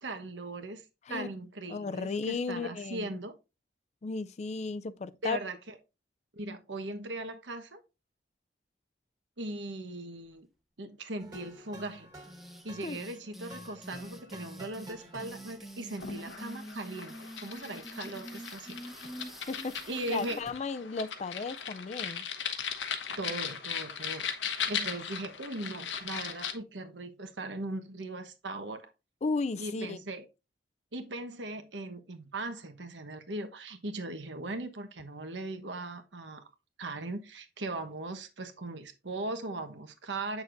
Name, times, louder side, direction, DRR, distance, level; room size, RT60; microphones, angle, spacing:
voice 1, 0.0-0.8 1.1-3.3 5.2-5.7 6.3-7.8 9.4-10.5 10.8-12.1 12.6-18.8 19.9-20.4 23.2-24.2 24.7-28.9 29.6-30.2 30.9-36.4 36.8-40.4, right 2 dB, 85° right, 1.2 m, -39 dB
voice 2, 1.7-3.2 4.0-5.4 12.8-13.0 19.5-22.2 29.2-30.0, left 4 dB, 40° left, 0.4 m, -35 dB
sound 1, 11.2-15.9, equal, 20° right, 1.7 m, -50 dB
sound 2, 12.2-20.5, equal, ahead, 0.8 m, -46 dB
sound 3, 15.9-26.5, left 7 dB, 90° left, 1.1 m, -38 dB
8.1 x 6.4 x 2.6 m
head